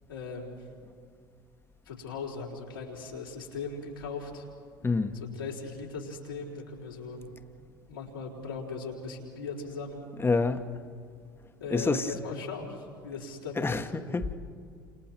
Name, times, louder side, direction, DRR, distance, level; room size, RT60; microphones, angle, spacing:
voice 1, 0.1-0.6 1.9-4.4 5.2-7.4 7.9-10.1 11.6-13.9, left 4 dB, 90° left, 4.2 m, -38 dB
voice 2, 4.8-5.2 10.2-10.6 11.7-12.1 13.6-14.3, left 3 dB, 20° left, 1.4 m, -27 dB
30.0 x 27.5 x 4.5 m
hypercardioid pair, 65°, 11 cm